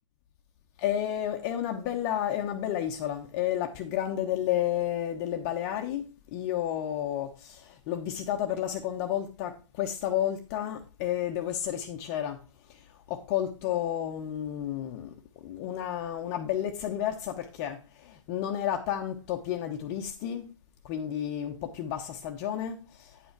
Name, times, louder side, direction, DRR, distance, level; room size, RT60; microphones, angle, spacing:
voice 1, 0.8-6.0 6.3-12.4 12.7-12.8 13.1-15.1 15.4-20.5 20.8-23.3, left 11 dB, 35° left, 1.0 m, -31 dB
9.8 x 5.4 x 4.6 m
hypercardioid pair, 140°, 16 cm